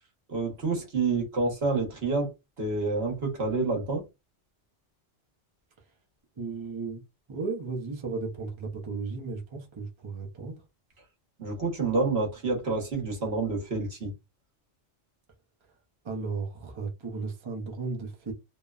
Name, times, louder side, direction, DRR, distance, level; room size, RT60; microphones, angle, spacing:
voice 1, 0.3-2.3 2.6-4.0 11.4-14.1, right 3 dB, 60° right, 1.3 m, -28 dB
voice 2, 6.4-7.0 7.3-10.6 16.0-18.3, right 4 dB, 30° right, 0.7 m, -35 dB
3.0 x 2.1 x 2.3 m
omnidirectional pair, 1.2 m